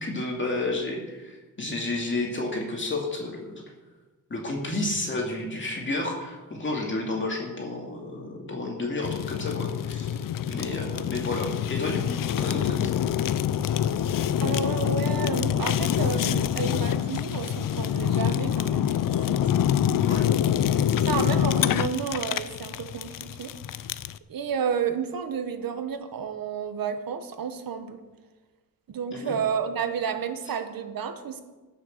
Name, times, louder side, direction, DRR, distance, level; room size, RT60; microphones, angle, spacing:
voice 1, 0.0-3.6 4.3-12.9 20.1-20.3 29.1-29.4, left 2 dB, 35° left, 0 dB, 2.4 m, -31 dB
Fire, 9.0-24.2, left 10 dB, 70° left, 0.6 m, -26 dB
voice 2, 14.4-19.4 21.0-23.5 24.3-28.0 28.9-31.4, right 7 dB, 80° right, 9 dB, 1.4 m, -31 dB
18.0 x 6.7 x 6.6 m, 1.2 s
wide cardioid pair, 135°, 34 cm